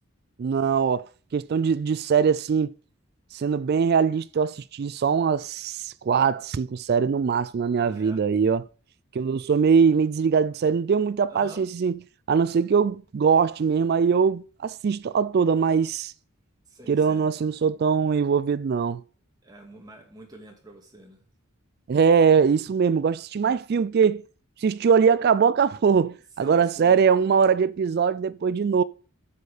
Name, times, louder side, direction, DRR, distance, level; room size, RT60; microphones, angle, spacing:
voice 1, 0.4-2.7 3.3-8.6 9.1-12.0 12.3-16.1 16.9-19.0 21.9-24.2 24.6-28.8, right 6 dB, 50° right, 0.3 m, -22 dB
voice 2, 7.8-8.2 11.3-11.7 16.7-17.3 19.4-21.3 26.4-27.1, right 1 dB, 20° right, 2.1 m, -46 dB
8.4 x 6.5 x 5.0 m
head